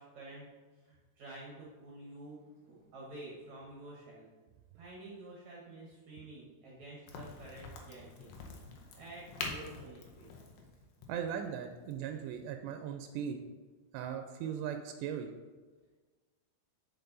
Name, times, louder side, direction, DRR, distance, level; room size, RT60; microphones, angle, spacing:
voice 1, 0.0-4.3 4.7-8.3 8.9-10.3, right 2 dB, 60° right, -4 dB, 1.9 m, -50 dB
Crack, 7.1-12.5, left 4 dB, 75° left, 2.0 m, -46 dB
voice 2, 11.1-13.4 13.9-15.3, right 8 dB, 85° right, 6 dB, 2.7 m, -38 dB
8.0 x 6.7 x 3.9 m, 1.3 s
omnidirectional pair, 4.9 m